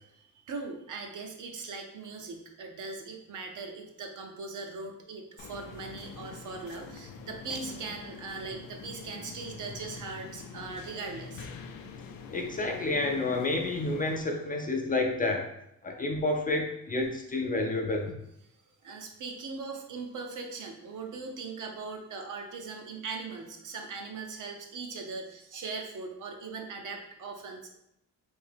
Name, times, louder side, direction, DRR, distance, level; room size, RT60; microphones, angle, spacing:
voice 1, 0.5-11.5 18.8-27.8, right 4 dB, 60° right, 3 dB, 0.7 m, -40 dB
sound 1, 5.4-14.2, left 5 dB, 85° left, 0.5 m, -45 dB
voice 2, 12.3-15.5 15.8-18.1, left 2 dB, 25° left, 2 dB, 0.4 m, -29 dB
3.5 x 2.7 x 3.4 m, 0.78 s
cardioid pair, 135°, 34 cm